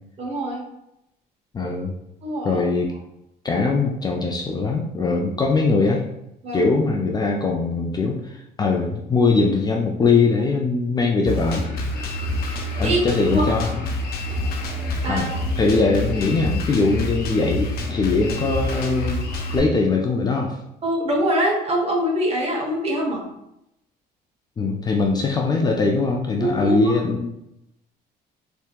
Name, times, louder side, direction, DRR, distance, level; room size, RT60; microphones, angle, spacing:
voice 1, 0.2-0.6 2.2-2.6 6.4-6.6 12.6-13.0 13.3-13.5 15.0-15.3 15.7-15.8 20.8-23.2 26.4-26.9, right 1 dB, 35° right, -1 dB, 0.9 m, -24 dB
voice 2, 1.5-2.0 2.4-2.9 3.4-6.0 6.5-11.6 12.8-13.7 15.1-15.3 15.6-19.2 19.5-20.6 24.6-27.3, left 3 dB, 25° left, 0 dB, 0.3 m, -21 dB
Drum kit, 11.3-19.6, left 1 dB, 65° left, 0.6 m, -27 dB
3.4 x 2.7 x 2.3 m, 0.83 s
cardioid pair, 110°, 17 cm